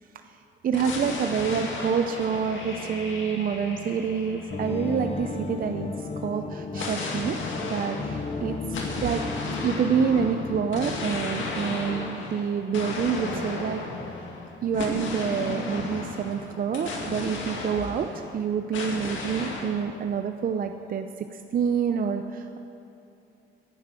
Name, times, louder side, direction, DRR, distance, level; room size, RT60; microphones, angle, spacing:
voice 1, 0.6-7.4 7.6-8.6 9.0-9.2 9.6-13.8 14.6-21.1 21.3-22.6, right 7 dB, 45° right, 7 dB, 0.6 m, -27 dB
sound 1, 0.7-5.4 6.7-18.4 18.7-19.8, left 3 dB, 75° left, 2.1 m, -34 dB
sound 2, 4.5-12.1, left 3 dB, 30° left, 0.8 m, -34 dB
11.0 x 9.5 x 7.6 m, 2.8 s
cardioid pair, 90°, 20 cm